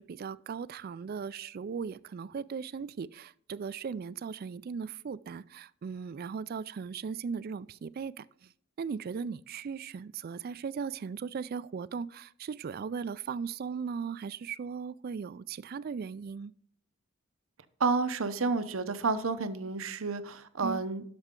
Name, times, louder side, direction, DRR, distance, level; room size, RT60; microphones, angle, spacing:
voice 1, 0.0-8.5 8.8-16.5 20.6-20.8, right 6 dB, 45° right, 0.3 m, -38 dB
voice 2, 17.8-21.0, right 4 dB, 80° right, 0.8 m, -30 dB
12.0 x 6.0 x 3.7 m
head